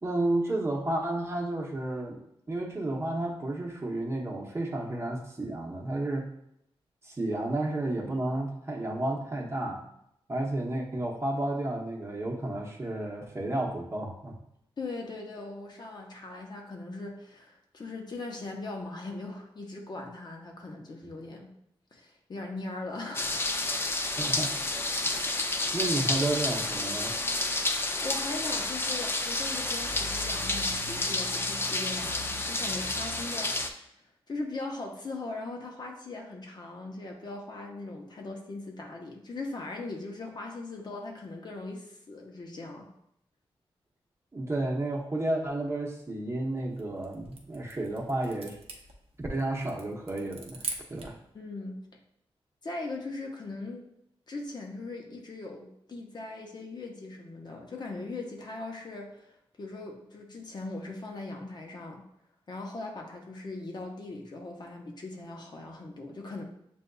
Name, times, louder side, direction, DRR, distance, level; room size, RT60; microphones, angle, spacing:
voice 1, 0.0-2.2 2.5-6.2 7.0-9.8 10.3-14.4 24.2-24.5 25.0-27.2 44.3-48.6 49.2-50.6 50.9-51.2, right 2 dB, 25° right, -1 dB, 0.8 m, -32 dB
voice 2, 14.8-21.5 21.9-23.5 27.7-33.9 34.3-42.9 51.3-51.8 52.6-53.8 54.3-62.0 62.5-66.4, left 2 dB, 45° left, 1 dB, 0.8 m, -40 dB
sound 1, 23.1-33.7, left 2 dB, 25° left, 0.4 m, -30 dB
sound 2, 46.6-51.2, right 4 dB, 85° right, 0.6 m, -43 dB
6.8 x 2.5 x 2.3 m, 0.76 s
cardioid pair, 80°, 10 cm